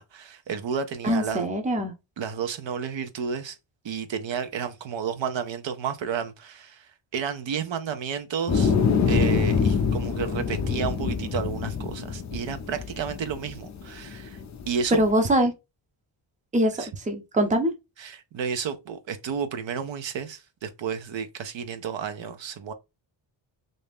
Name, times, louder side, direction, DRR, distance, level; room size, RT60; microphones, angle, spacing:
voice 1, 0.0-1.4 2.2-3.6 3.8-8.7 9.1-14.4 14.7-15.0 16.8-16.9 18.0-22.7, right 7 dB, 65° right, 0.6 m, -31 dB
voice 2, 1.0-1.9 14.9-15.5 16.5-17.7, right 1 dB, 15° right, 0.6 m, -23 dB
sound 1, 8.5-15.1, left 5 dB, 35° left, 0.5 m, -25 dB
3.2 x 2.6 x 3.4 m
wide cardioid pair, 150°, 48 cm